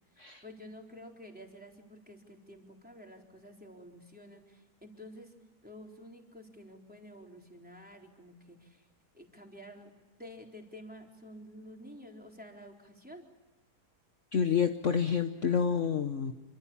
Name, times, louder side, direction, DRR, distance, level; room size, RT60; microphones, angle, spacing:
voice 1, 0.1-5.3 5.6-8.9 9.1-9.9 10.2-13.2, equal, 5° right, 0 dB, 4.0 m, -50 dB
voice 2, 14.3-16.3, left 7 dB, 50° left, 6 dB, 1.3 m, -28 dB
27.0 x 25.5 x 7.2 m, 1.2 s
omnidirectional pair, 1.8 m